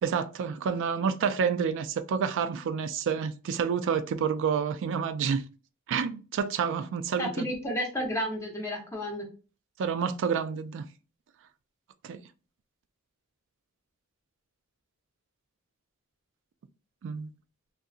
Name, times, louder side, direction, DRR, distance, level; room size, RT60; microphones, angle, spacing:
voice 1, 0.0-5.4 5.9-7.5 9.8-10.9 12.0-12.2 17.0-17.3, right 6 dB, 60° right, 0.3 m, -29 dB
voice 2, 7.2-9.2, equal, 15° left, 0.7 m, -32 dB
2.7 x 2.5 x 2.4 m
head